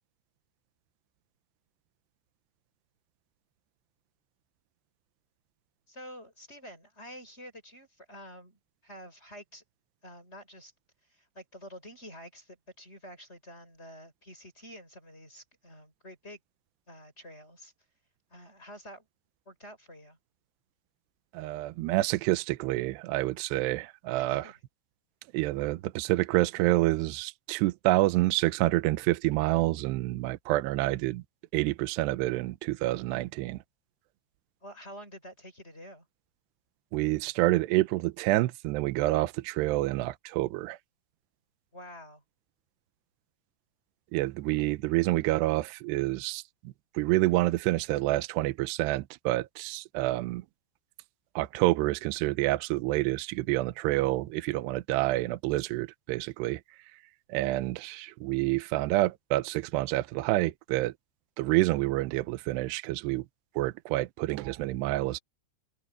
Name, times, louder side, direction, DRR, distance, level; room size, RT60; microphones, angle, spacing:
voice 1, 5.9-9.6 10.0-10.7 11.1-16.4 16.9-17.7 18.3-19.1 19.4-20.2 24.1-24.5 34.6-36.1 41.7-42.2, equal, 10° left, 6.3 m, -48 dB
voice 2, 21.3-24.5 25.3-31.2 31.5-33.6 36.9-40.8 44.1-50.4 51.4-56.6 57.3-60.9 61.4-63.3 63.6-65.2, right 18 dB, 90° right, 2.4 m, -28 dB
open air
omnidirectional pair, 5.9 m